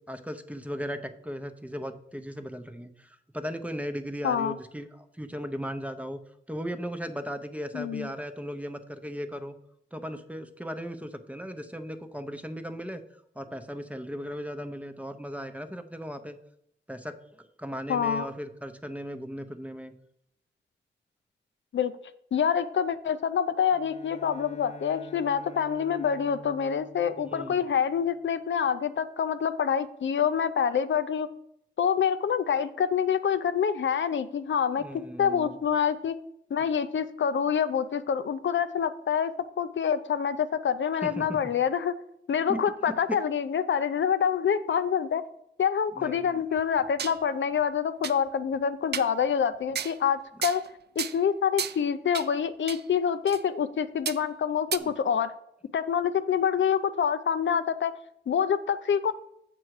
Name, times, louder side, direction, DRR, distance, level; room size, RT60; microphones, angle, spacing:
voice 1, 0.1-6.2 6.5-9.5 9.9-13.0 13.4-16.4 16.9-19.9 27.2-27.6 34.8-35.6 41.0-41.4 42.5-42.6 43.1-43.2 46.0-46.4 54.7-54.9, equal, 5° right, 8 dB, 0.7 m, -37 dB
voice 2, 4.2-4.5 7.7-8.1 17.9-18.3 21.7-21.9 22.3-31.3 31.8-34.8 35.2-36.2 36.5-39.3 39.6-41.9 42.3-45.2 45.6-50.6 51.0-55.3 55.7-57.9 58.3-59.1, left 7 dB, 85° left, 11 dB, 0.5 m, -26 dB
Bowed string instrument, 23.7-28.3, left 5 dB, 35° left, 0.6 m, -48 dB
sound 1, 46.6-47.2 47.6-47.7 48.0-48.2 48.9-49.1 49.7-50.0 50.4-50.7 51.0-51.2 51.6-51.8 52.1-52.3 52.7-52.8 53.3-53.4 54.1-54.2 54.7-54.8, right 8 dB, 60° right, 0.4 m, -33 dB
7.6 x 6.1 x 4.7 m, 0.74 s
wide cardioid pair, 100°, 19 cm